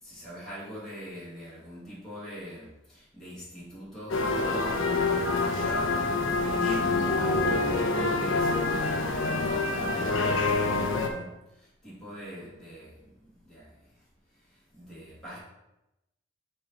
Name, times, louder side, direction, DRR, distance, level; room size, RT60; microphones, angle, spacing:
voice 1, 0.0-14.0 14.3-15.4, equal, 5° left, -10 dB, 2.5 m, -42 dB
sound 1, 4.1-11.1, left 3 dB, 80° left, 0.9 m, -26 dB
6.9 x 4.5 x 4.4 m, 0.92 s
head